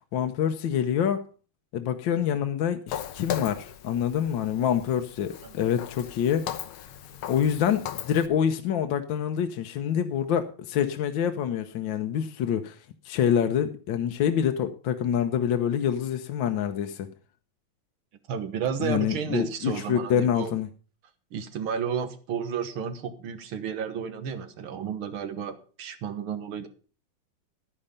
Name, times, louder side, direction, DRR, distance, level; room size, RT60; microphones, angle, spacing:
voice 1, 0.1-1.2 1.7-6.5 7.3-12.8 13.0-17.1 18.8-20.7, left 9 dB, 70° left, 7 dB, 1.5 m, -26 dB
Walk footsteps, 2.9-8.3, left 10 dB, 90° left, 1.8 m, -38 dB
voice 2, 18.3-20.5 21.3-26.7, right 7 dB, 75° right, 10 dB, 2.1 m, -32 dB
11.5 x 9.9 x 5.1 m, 0.38 s
omnidirectional pair, 2.3 m